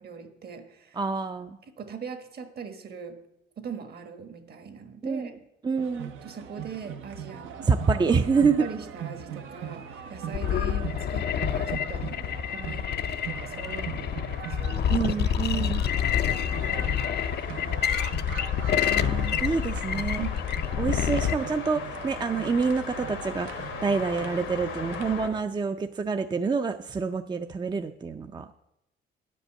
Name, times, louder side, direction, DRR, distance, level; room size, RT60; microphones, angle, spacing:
voice 1, 0.0-1.0 1.8-3.2 3.6-5.3 6.2-7.7 8.1-17.0 17.3-17.9 20.2-20.5, right 6 dB, 50° right, 7 dB, 1.3 m, -41 dB
voice 2, 0.9-1.6 5.0-5.3 5.6-6.1 7.6-8.7 14.9-15.8 17.5-17.7 18.8-20.2 20.8-28.5, right 5 dB, 20° right, 8 dB, 0.4 m, -27 dB
sound 1, 5.8-25.4, right 8 dB, 85° right, 0.9 m, -40 dB
sound 2, 9.5-25.3, left 7 dB, 85° left, 1.2 m, -41 dB
sound 3, 10.3-21.4, left 9 dB, 55° left, 0.5 m, -28 dB
9.5 x 5.4 x 7.5 m, 0.85 s
cardioid pair, 90°, 20 cm